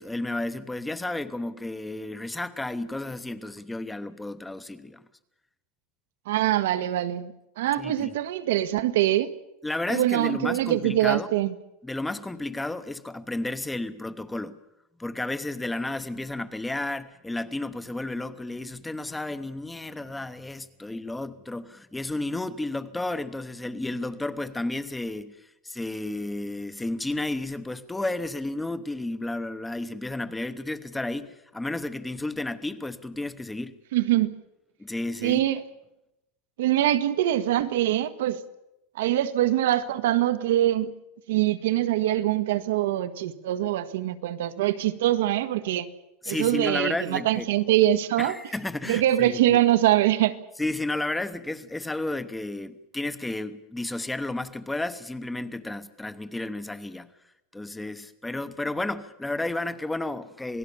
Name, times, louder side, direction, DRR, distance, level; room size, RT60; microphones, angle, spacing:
voice 1, 0.0-5.0 7.8-8.1 9.6-11.3 11.8-14.6 15.0-25.4 25.6-33.7 34.8-35.4 46.2-47.4 48.2-49.6 50.6-57.1 57.5-60.6, left 2 dB, 5° left, 13 dB, 0.9 m, -32 dB
voice 2, 6.2-9.3 9.9-11.5 33.9-34.4 35.2-35.6 36.6-38.4 38.9-40.9 41.3-45.9 46.3-48.4 48.8-50.4, right 13 dB, 80° right, 10 dB, 1.5 m, -23 dB
27.5 x 18.5 x 7.1 m, 0.91 s
supercardioid pair, 175°, 0 cm